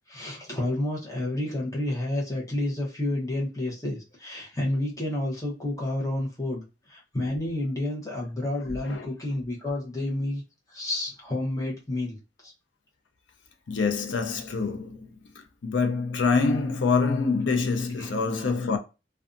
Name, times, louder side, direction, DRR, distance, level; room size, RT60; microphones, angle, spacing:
voice 1, 0.1-10.4 10.7-12.2 12.4-12.5 18.0-18.1, left 1 dB, 20° left, 0.8 m, -30 dB
voice 2, 8.7-9.1 13.7-18.8, left 4 dB, 90° left, 0.5 m, -26 dB
2.6 x 2.3 x 2.4 m
head